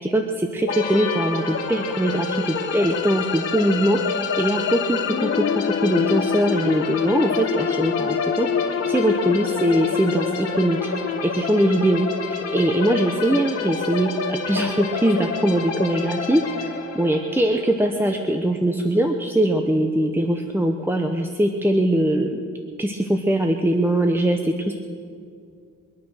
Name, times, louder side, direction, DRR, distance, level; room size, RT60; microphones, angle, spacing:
voice 1, 0.0-10.8 11.2-16.4 16.9-22.3 22.8-24.7, right 1 dB, 5° right, 4 dB, 1.0 m, -22 dB
sound 1, 0.7-18.3, left 5 dB, 55° left, 2.5 m, -29 dB
sound 2, 1.2-13.3, left 9 dB, 40° left, 0.4 m, -29 dB
23.5 x 9.3 x 6.5 m, 2.3 s
cardioid pair, 100°, 30 cm